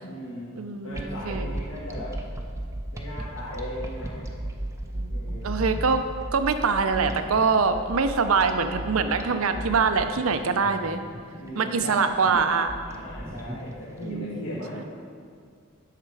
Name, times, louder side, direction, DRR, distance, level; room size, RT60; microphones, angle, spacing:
voice 1, 0.0-0.5 0.8-2.2 2.9-4.3 5.1-5.6 11.4-12.0 12.9-14.8, equal, 75° left, -8 dB, 1.5 m, -37 dB
voice 2, 0.6-1.5 4.9-6.0 6.3-11.0 11.6-12.7 14.0-14.8, right 5 dB, 90° right, 9 dB, 0.6 m, -24 dB
sound 1, 0.9-14.0, right 1 dB, 15° right, 0.5 m, -35 dB
9.4 x 6.6 x 4.7 m, 2.1 s
head